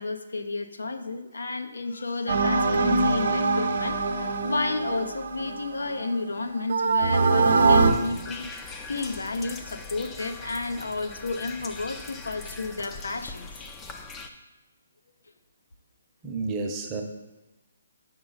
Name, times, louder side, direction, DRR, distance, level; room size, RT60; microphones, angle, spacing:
voice 1, 0.0-8.5 8.9-13.5, left 3 dB, 90° left, 8 dB, 0.7 m, -32 dB
sound 1, 2.3-6.1 6.7-7.9, right 3 dB, 55° right, 0.7 m, -23 dB
sound 2, 7.9-14.3, left 4 dB, 10° left, 0.4 m, -41 dB
voice 2, 16.2-17.0, right 3 dB, 20° right, 2 dB, 0.8 m, -30 dB
6.9 x 5.5 x 4.0 m, 1.1 s
hypercardioid pair, 160°, 0 cm